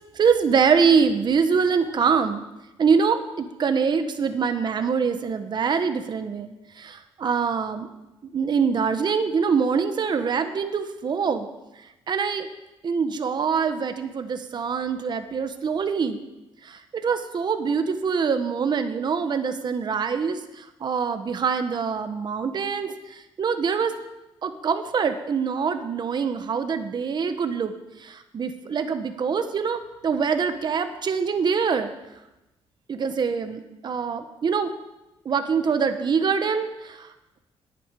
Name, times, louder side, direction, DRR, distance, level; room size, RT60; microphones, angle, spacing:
voice 1, 0.2-2.4 2.8-6.5 6.8-7.9 8.3-11.5 12.1-12.5 12.8-16.2 16.6-22.9 23.4-23.9 24.4-27.7 28.0-31.9 32.9-34.7 35.2-37.1, right 6 dB, 45° right, 8 dB, 1.1 m, -24 dB
10.0 x 9.3 x 9.0 m, 0.98 s
cardioid pair, 110°, 11 cm